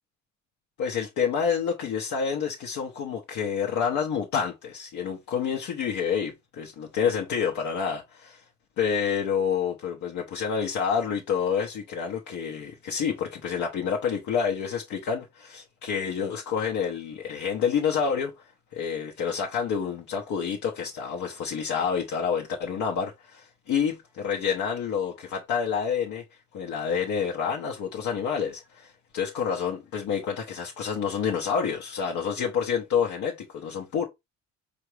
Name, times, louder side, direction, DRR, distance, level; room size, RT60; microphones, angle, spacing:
voice 1, 0.8-8.4 8.8-18.3 18.7-26.2 26.5-34.0, left 7 dB, 80° left, 0.8 m, -28 dB
4.8 x 2.5 x 3.1 m
cardioid pair, 90°, 30 cm